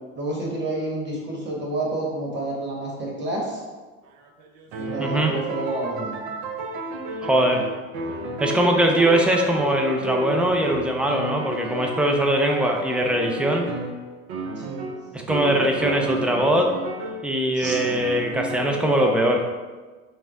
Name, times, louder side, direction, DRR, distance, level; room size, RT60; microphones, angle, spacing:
voice 1, 0.1-3.6 4.7-6.2 14.6-14.9 15.7-16.1 17.5-17.8, right 2 dB, 25° right, -2 dB, 1.5 m, -29 dB
sound 1, 4.1-17.3 17.6-19.4, right 2 dB, 50° right, 0.7 m, -32 dB
voice 2, 5.0-5.3 7.2-7.6 8.4-13.7 15.3-16.7 17.2-19.4, right 1 dB, 5° right, 2 dB, 0.4 m, -21 dB
6.2 x 2.1 x 3.5 m, 1.3 s
figure-of-eight pair, 65°, 40 cm